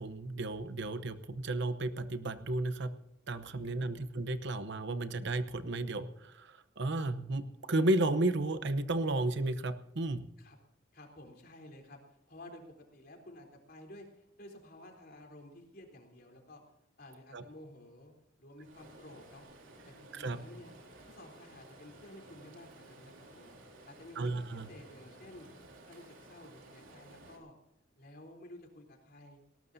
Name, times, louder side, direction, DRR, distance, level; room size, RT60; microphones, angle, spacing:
voice 1, 0.0-2.9 3.3-6.5 6.8-10.2 17.3-17.4 20.1-20.4 24.2-24.7, right 2 dB, 65° right, 11 dB, 0.9 m, -33 dB
voice 2, 3.4-4.1 10.4-10.6 10.9-16.6 17.0-18.1 18.4-19.5 19.9-20.7 21.0-23.5 23.9-25.5 25.9-27.6 28.0-29.4, left 1 dB, 55° left, 3 dB, 3.7 m, -53 dB
Stream, 18.6-27.4, right 2 dB, 85° right, 3.6 m, -55 dB
19.5 x 18.0 x 2.7 m, 0.84 s
head